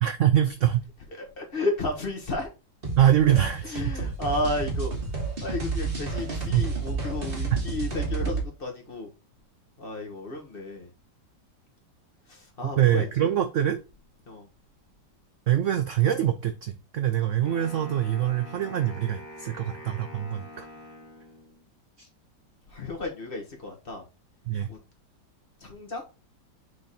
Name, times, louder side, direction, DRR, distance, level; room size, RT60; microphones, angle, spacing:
voice 1, 0.0-0.8 3.0-3.8 6.5-6.7 12.8-13.8 15.5-20.6 22.0-22.1 24.5-24.7, right 11 dB, 85° right, 0.6 m, -24 dB
voice 2, 1.1-2.5 3.6-4.9 5.4-9.1 9.8-10.9 12.3-13.3 14.3-14.5 22.7-24.0 24.7-24.8 25.6-26.0, left 2 dB, 30° left, 1.8 m, -33 dB
sound 1, 2.8-8.4, right 4 dB, 30° right, 1.7 m, -30 dB
Wind instrument woodwind instrument, 17.4-21.7, left 1 dB, 75° left, 2.4 m, -45 dB
6.5 x 3.6 x 4.2 m
omnidirectional pair, 2.0 m